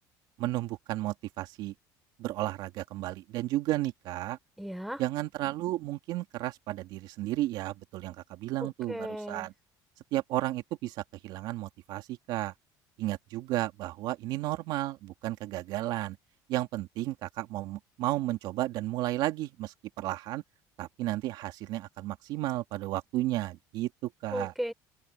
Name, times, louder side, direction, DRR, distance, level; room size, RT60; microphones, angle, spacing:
voice 1, 0.4-1.7 2.2-4.4 5.0-9.5 10.1-12.5 13.0-16.2 16.5-20.4 20.8-24.5, right 16 dB, 65° right, 2.5 m, -33 dB
voice 2, 4.6-5.0 8.6-9.5 24.3-24.7, equal, ahead, 4.4 m, -36 dB
open air
cardioid pair, 155°, 8 cm